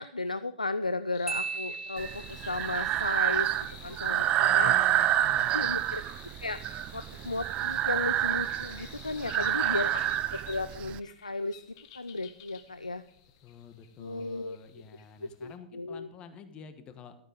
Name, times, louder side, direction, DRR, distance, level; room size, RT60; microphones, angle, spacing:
voice 1, 0.0-3.5 3.8-5.1 5.5-6.0 6.4-10.0 10.3-11.6 11.9-13.0 14.0-14.6 15.4-16.1, left 3 dB, 85° left, 13 dB, 0.4 m, -35 dB
sound 1, 1.1-15.6, left 10 dB, 45° left, 1.5 m, -51 dB
Marimba xylophone, 1.3-2.7, right 5 dB, 5° right, 0.9 m, -36 dB
Breathing, 2.0-11.0, right 13 dB, 30° right, 0.5 m, -28 dB
voice 2, 4.4-5.8 9.1-9.8 13.4-17.1, left 6 dB, 25° left, 9 dB, 1.3 m, -49 dB
12.5 x 9.5 x 5.1 m, 0.74 s
figure-of-eight pair, 105°, 4 cm